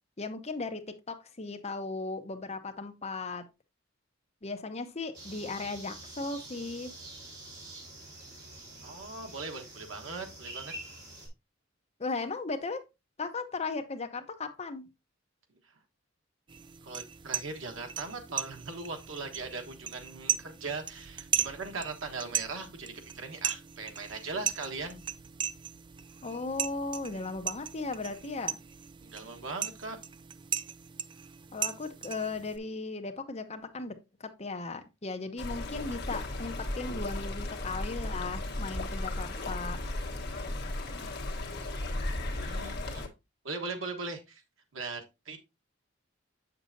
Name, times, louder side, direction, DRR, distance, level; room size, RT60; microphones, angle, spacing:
voice 1, 0.2-3.5 4.4-6.9 12.0-12.8 13.2-14.8 26.2-28.6 31.5-39.8, left 3 dB, 35° left, 0.8 m, -37 dB
sound 1, 5.1-11.3, right 2 dB, 60° right, 3.3 m, -46 dB
voice 2, 8.8-10.7 16.8-25.0 29.0-30.0 42.3-43.0 43.4-44.4 44.7-45.4, right 3 dB, 85° right, 1.3 m, -39 dB
sound 2, 16.5-32.6, right 9 dB, 25° right, 0.3 m, -37 dB
Stream, 35.4-43.1, left 1 dB, 55° left, 1.3 m, -35 dB
7.4 x 6.7 x 2.7 m
head